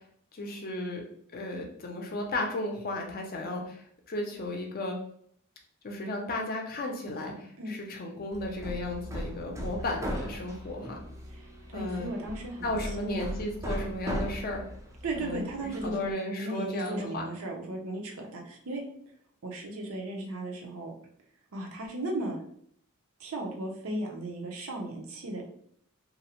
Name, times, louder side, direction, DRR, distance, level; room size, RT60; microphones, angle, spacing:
voice 1, 0.3-1.0 1.3-3.8 4.1-5.0 5.8-11.0 11.7-12.1 12.6-14.6 15.2-17.3, left 2 dB, 45° left, 2 dB, 0.5 m, -34 dB
Hammer, 8.3-16.1, equal, 15° right, 0.4 m, -38 dB
voice 2, 11.7-12.7 13.0-13.3 15.0-15.9 16.4-18.8 19.4-20.9 21.5-22.4 23.2-25.4, right 2 dB, 75° right, 1 dB, 0.6 m, -36 dB
2.5 x 2.0 x 2.8 m, 0.65 s
head